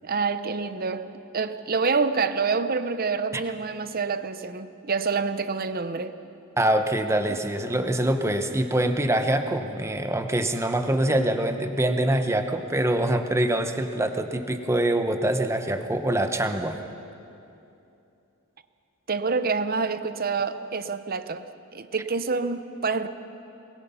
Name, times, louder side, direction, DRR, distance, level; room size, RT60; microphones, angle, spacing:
voice 1, 0.0-6.1 19.1-21.5 21.7-23.1, right 4 dB, 45° right, 11 dB, 0.8 m, -27 dB
voice 2, 6.6-16.8, right 1 dB, 15° right, 7 dB, 0.9 m, -24 dB
22.0 x 20.5 x 5.6 m, 2.8 s
head